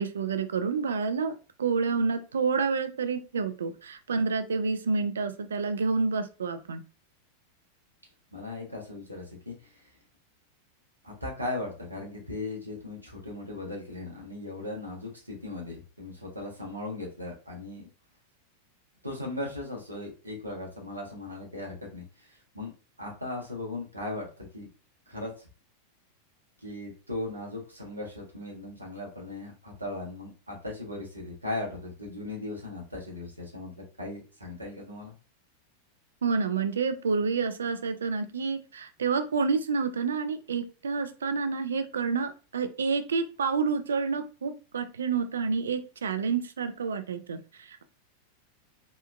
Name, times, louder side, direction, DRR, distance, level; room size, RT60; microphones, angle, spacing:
voice 1, 0.0-6.8 36.2-47.8, right 5 dB, 70° right, 9 dB, 0.3 m, -29 dB
voice 2, 8.3-9.8 11.0-17.8 19.0-22.7 23.0-24.7 25.1-25.5 26.6-35.1, left 2 dB, 85° right, -2 dB, 0.9 m, -38 dB
3.0 x 2.1 x 2.3 m, 0.34 s
figure-of-eight pair, 90°, 0 cm